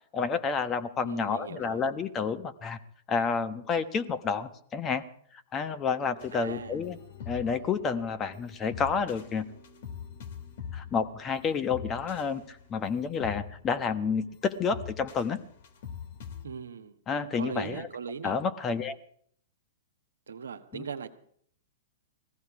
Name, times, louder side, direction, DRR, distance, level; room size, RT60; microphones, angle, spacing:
voice 1, 0.1-2.8 3.1-5.0 5.5-7.0 7.3-9.4 10.7-15.4 17.1-17.9 18.2-19.0 20.7-20.8, left 5 dB, 25° left, 10 dB, 1.1 m, -30 dB
voice 2, 1.0-1.8 6.3-6.8 16.4-17.0 17.3-18.3 20.3-21.1, right 6 dB, 75° right, 8 dB, 1.2 m, -39 dB
sound 1, 6.2-16.4, left 7 dB, 60° left, 2.5 m, -44 dB
19.5 x 15.0 x 4.8 m, 0.63 s
hypercardioid pair, 115°, 0 cm